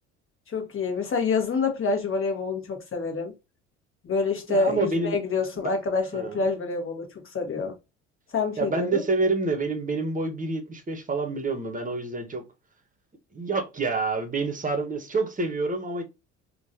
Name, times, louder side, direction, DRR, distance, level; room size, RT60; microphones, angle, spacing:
voice 1, 0.5-3.3 4.0-7.1 7.3-7.7 8.3-9.0, left 4 dB, 35° left, 1.5 m, -27 dB
voice 2, 4.5-5.2 5.6-5.7 6.1-6.4 8.6-12.4 13.3-16.0, right 3 dB, 25° right, 1.2 m, -27 dB
3.7 x 2.5 x 2.7 m
hypercardioid pair, 60°, 35 cm